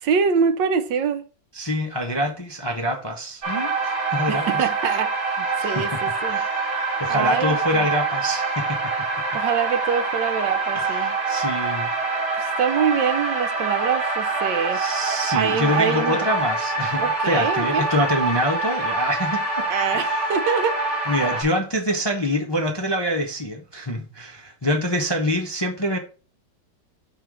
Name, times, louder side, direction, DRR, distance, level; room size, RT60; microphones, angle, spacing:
voice 1, 0.0-1.2 4.3-6.4 7.1-7.8 9.3-11.2 12.4-14.8 15.3-16.2 16.9-17.9 19.7-20.8, right 6 dB, 80° right, 1.4 m, -25 dB
voice 2, 1.5-4.6 5.5-6.0 6.3-6.7 7.0-8.8 10.7-11.9 14.7-19.7 19.9-20.3 21.1-26.0, equal, 25° left, 0.6 m, -25 dB
sound 1, 3.4-21.4, right 3 dB, 50° right, 2.7 m, -25 dB
5.5 x 4.2 x 6.1 m
omnidirectional pair, 1.9 m